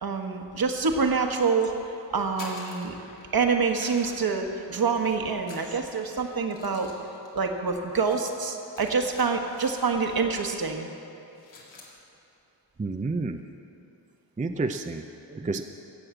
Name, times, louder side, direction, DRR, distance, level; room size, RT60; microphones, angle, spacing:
voice 1, 0.0-2.9 3.3-6.9 7.3-10.9, right 5 dB, 55° right, 3 dB, 1.4 m, -26 dB
sound 1, 2.2-3.4 3.7-5.0 5.4-10.3 10.6-10.8 11.1-12.0, left 2 dB, 85° left, 2.4 m, -48 dB
voice 2, 12.8-13.4 14.4-15.6, right 3 dB, 20° right, 6 dB, 0.5 m, -30 dB
16.5 x 6.5 x 7.6 m, 2.8 s
wide cardioid pair, 95°, 43 cm